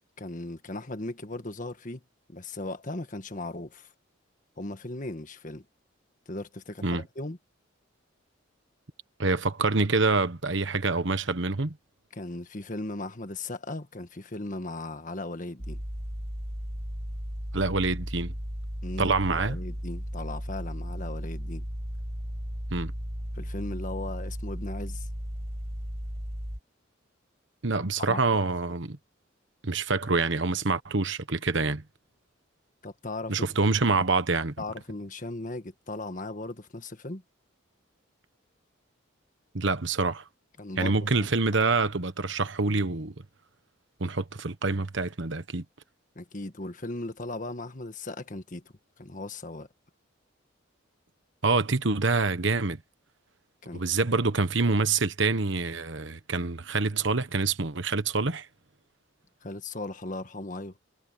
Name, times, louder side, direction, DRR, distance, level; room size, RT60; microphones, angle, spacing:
voice 1, 0.2-2.0 2.3-3.9 4.6-5.6 6.3-7.4 12.1-15.8 18.8-21.6 23.3-25.1 28.1-28.2 32.8-33.4 34.6-37.2 40.6-41.0 46.1-48.6 49.0-49.7 53.6-53.8 59.4-60.8, left 2 dB, 40° left, 1.6 m, -37 dB
voice 2, 9.2-11.8 17.5-18.3 19.0-19.6 22.7-22.9 27.6-29.0 29.6-31.8 33.3-34.5 39.5-40.2 40.8-43.1 44.0-45.6 51.4-52.8 53.7-58.5, right 3 dB, 60° right, 1.2 m, -26 dB
sound 1, 15.6-26.6, equal, 35° right, 6.1 m, -35 dB
head